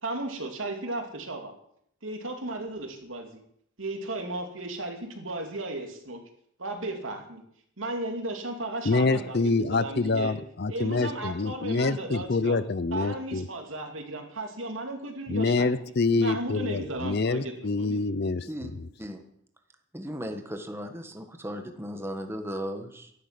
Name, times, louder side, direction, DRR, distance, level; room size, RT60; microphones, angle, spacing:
voice 1, 0.0-1.5 2.0-3.4 3.8-6.2 6.6-7.4 7.8-10.3 10.7-12.6 12.9-15.8 16.2-18.0, right 2 dB, 70° right, 4 dB, 2.7 m, -35 dB
voice 2, 8.8-13.5 15.3-18.7, left 3 dB, 50° left, 16 dB, 0.6 m, -26 dB
voice 3, 19.9-23.1, equal, 10° right, 5 dB, 1.5 m, -36 dB
13.5 x 11.5 x 7.6 m, 0.68 s
head